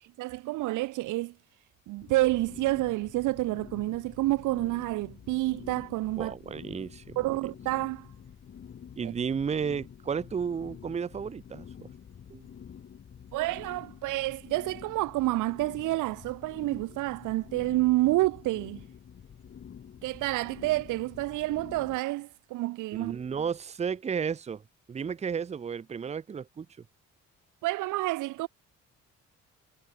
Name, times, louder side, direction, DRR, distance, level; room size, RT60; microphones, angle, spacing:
voice 1, 0.2-1.3 1.9-6.3 7.2-8.1 9.0-9.1 13.3-18.8 20.0-23.2 27.6-28.5, right 19 dB, 85° right, 0.5 m, -29 dB
sound 1, 2.0-22.0, left 8 dB, 40° left, 1.1 m, -48 dB
voice 2, 6.2-7.2 9.0-11.9 12.3-12.5 23.0-24.6 24.9-26.8, right 6 dB, 20° right, 0.5 m, -33 dB
cardioid pair, 90°, 30 cm